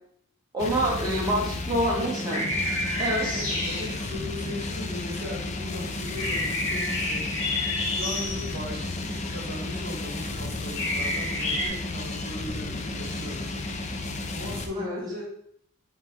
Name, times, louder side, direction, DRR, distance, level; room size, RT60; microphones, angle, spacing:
voice 1, 0.5-2.5 3.0-3.4 14.7-15.0, equal, 20° right, -4 dB, 1.2 m, -26 dB
sound 1, 0.6-14.7, left 2 dB, 35° left, 0.6 m, -33 dB
sound 2, 2.3-4.0 6.2-8.5 10.7-11.7, left 1 dB, 75° left, 2.7 m, -29 dB
voice 2, 3.3-7.2 7.8-13.5 14.0-15.3, left 1 dB, 45° right, -3 dB, 2.4 m, -38 dB
8.3 x 3.7 x 3.6 m, 0.69 s
head